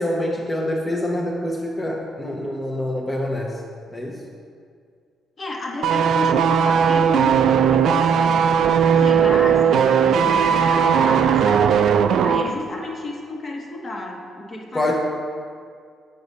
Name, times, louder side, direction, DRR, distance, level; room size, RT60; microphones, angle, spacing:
voice 1, 0.0-3.6 3.9-4.2 14.7-14.9, left 1 dB, 20° left, -1 dB, 0.9 m, -25 dB
voice 2, 5.4-8.6 8.9-11.8 12.2-14.9, left 2 dB, 40° left, 0 dB, 1.3 m, -31 dB
sound 1, 5.8-12.5 12.8-12.9, right 7 dB, 75° right, 0.3 m, -17 dB
6.8 x 4.8 x 5.3 m, 2.2 s
cardioid pair, 90°, 0 cm